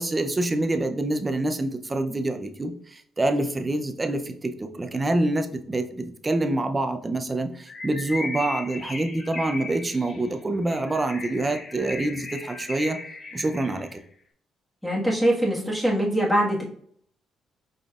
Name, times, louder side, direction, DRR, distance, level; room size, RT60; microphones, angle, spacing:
voice 1, 0.0-13.0 13.3-14.0, right 2 dB, 25° right, 6 dB, 0.6 m, -26 dB
Bird, 7.7-14.0, left 3 dB, 45° left, 1.0 m, -37 dB
voice 2, 14.8-16.6, right 1 dB, 5° left, -4 dB, 1.6 m, -23 dB
5.1 x 4.0 x 2.5 m, 0.62 s
cardioid pair, 90°, 0 cm